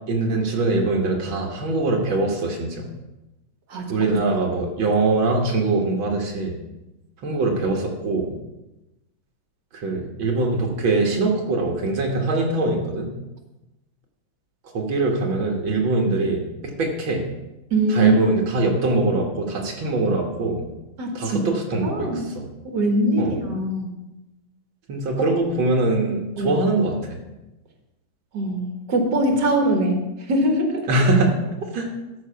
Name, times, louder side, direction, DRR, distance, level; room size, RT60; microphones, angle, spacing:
voice 1, 0.1-2.8 3.9-6.6 7.2-8.3 9.7-13.1 14.7-17.2 17.9-20.7 21.1-22.5 23.2-23.4 24.9-27.2 30.9-31.3 31.7-31.9, right 2 dB, 80° right, 0 dB, 2.1 m, -22 dB
voice 2, 17.7-18.2 21.0-21.4 21.8-22.2 22.7-23.9 26.4-26.6 28.3-30.9, right 1 dB, 60° right, 3 dB, 2.1 m, -22 dB
13.0 x 6.1 x 5.7 m, 1.0 s
omnidirectional pair, 2.1 m